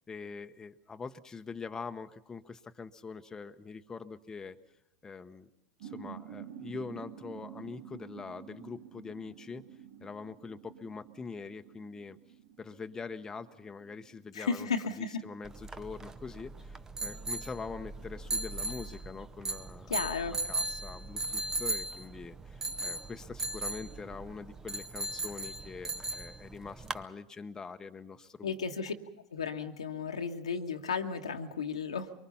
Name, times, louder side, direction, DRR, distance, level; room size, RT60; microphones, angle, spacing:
voice 1, 0.1-4.6 5.0-5.5 5.8-9.6 10.0-12.2 12.6-14.7 15.0-19.9 20.5-28.5, left 5 dB, 20° left, 7 dB, 1.0 m, -44 dB
sound 1, 5.8-15.0, right 9 dB, 65° right, 1.4 m, -50 dB
voice 2, 14.3-15.2 19.9-20.4 28.4-28.9 29.3-32.1, left 5 dB, 80° left, 4 dB, 1.4 m, -34 dB
sound 2, 15.4-27.0, right 2 dB, 20° right, 0.9 m, -38 dB
24.0 x 24.0 x 5.6 m, 0.85 s
figure-of-eight pair, 80°, 3 cm